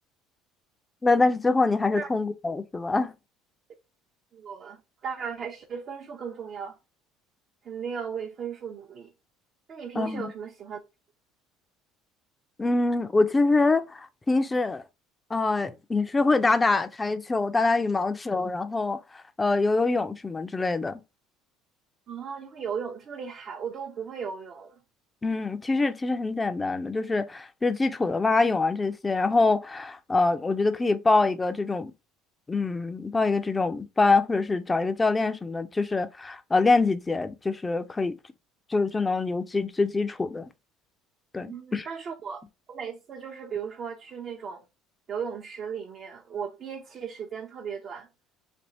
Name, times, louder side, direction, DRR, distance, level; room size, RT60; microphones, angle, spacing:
voice 1, 1.0-3.1 10.0-10.2 12.6-14.8 15.3-21.0 25.2-31.9 32.5-38.2 38.7-40.5 41.3-41.9, left 3 dB, 20° left, 0.5 m, -25 dB
voice 2, 4.3-6.8 7.6-9.1 9.7-10.8 22.1-24.8 41.4-42.4 42.7-44.6 45.1-48.1, right 7 dB, 45° right, 0.7 m, -36 dB
3.5 x 2.4 x 4.0 m
supercardioid pair, 95°, 0 cm